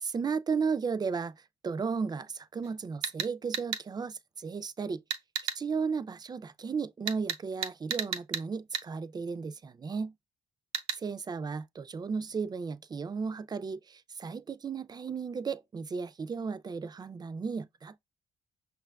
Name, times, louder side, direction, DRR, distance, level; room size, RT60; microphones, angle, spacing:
voice 1, 0.0-1.3 1.6-5.0 5.6-10.1 10.9-18.0, right 5 dB, 25° right, 0.3 m, -34 dB
sound 1, 2.6-2.7 3.0-3.8 5.1-5.6 7.1-8.5 8.7-8.9 10.7-11.0, right 8 dB, 90° right, 0.5 m, -33 dB
5.5 x 2.3 x 2.3 m
supercardioid pair, 65°, 17 cm